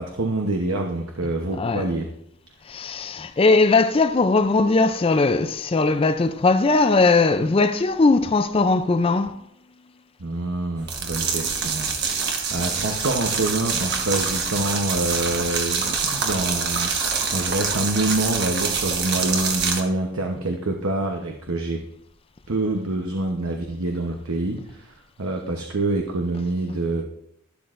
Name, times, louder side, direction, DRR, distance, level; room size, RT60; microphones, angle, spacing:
voice 1, 0.0-2.1 10.2-21.8 22.5-27.0, right 2 dB, 75° right, 0.9 m, -26 dB
voice 2, 2.7-9.4, left 3 dB, 25° left, 0.4 m, -19 dB
sound 1, 10.8-19.8, right 5 dB, 50° right, 1.3 m, -25 dB
12.0 x 11.5 x 2.5 m
head